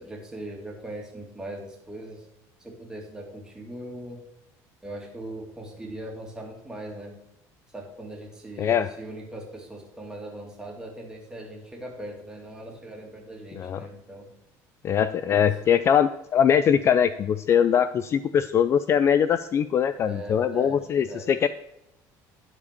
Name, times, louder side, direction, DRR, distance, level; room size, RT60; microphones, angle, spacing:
voice 1, 0.0-2.3 2.6-4.2 4.8-7.2 7.7-14.3 15.3-15.5 20.0-21.3, right 1 dB, 10° right, 0 dB, 2.5 m, -40 dB
voice 2, 8.6-8.9 13.6-13.8 14.8-21.5, left 8 dB, 35° left, 12 dB, 0.4 m, -22 dB
11.0 x 5.0 x 6.7 m, 0.84 s
cardioid pair, 140°, 8 cm